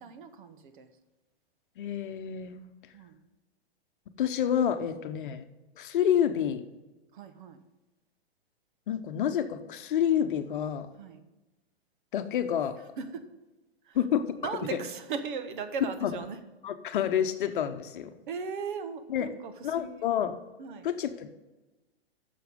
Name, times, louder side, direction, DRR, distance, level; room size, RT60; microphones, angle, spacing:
voice 1, 0.0-0.9 2.9-3.2 7.1-7.6 11.0-11.2 13.0-13.2 13.8-14.0 14.4-16.4 18.3-20.1 20.6-20.9, right 5 dB, 50° right, 9 dB, 1.2 m, -38 dB
voice 2, 1.8-2.6 4.2-5.5 5.8-6.6 8.9-10.9 12.1-12.8 13.9-14.4 14.7-14.8 16.0-16.2 16.6-18.1 19.1-19.3 19.6-20.4 20.8-21.3, left 9 dB, 50° left, 9 dB, 0.9 m, -28 dB
10.5 x 6.9 x 5.3 m, 1.1 s
figure-of-eight pair, 115°, 32 cm